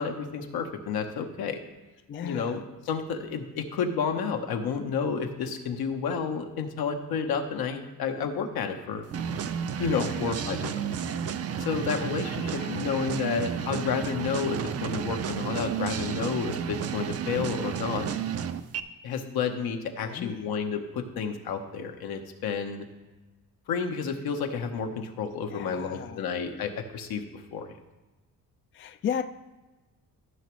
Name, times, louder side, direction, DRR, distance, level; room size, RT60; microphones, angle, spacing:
voice 1, 0.0-1.6 2.2-9.0 9.8-10.8 11.6-18.1 19.0-22.9 23.7-27.7, left 6 dB, 80° left, 4 dB, 1.1 m, -31 dB
voice 2, 2.1-2.7 9.9-10.4 12.5-12.8 20.0-20.5 25.5-26.2 28.7-29.2, left 8 dB, 35° left, 9 dB, 0.4 m, -35 dB
sound 1, 9.1-18.8, right 8 dB, 40° right, 0.5 m, -32 dB
14.5 x 5.9 x 3.2 m, 1.1 s
cardioid pair, 110°, 37 cm